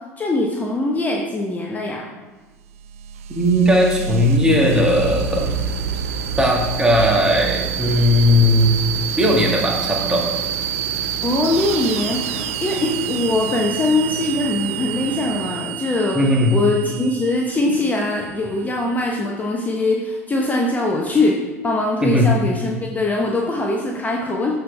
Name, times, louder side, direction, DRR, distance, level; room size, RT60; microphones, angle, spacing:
voice 1, 0.2-2.1 11.2-24.5, left 2 dB, 20° left, 0 dB, 0.9 m, -22 dB
sound 1, 2.7-19.0, right 8 dB, 65° right, 0.6 m, -28 dB
voice 2, 3.3-5.5 6.4-8.8 9.2-10.2 16.1-16.5 22.0-22.3, left 1 dB, 10° right, -2 dB, 1.9 m, -17 dB
sound 2, 5.0-15.7, right 2 dB, 80° right, 1.0 m, -34 dB
13.0 x 4.3 x 3.4 m, 1.3 s
figure-of-eight pair, 70°, 8 cm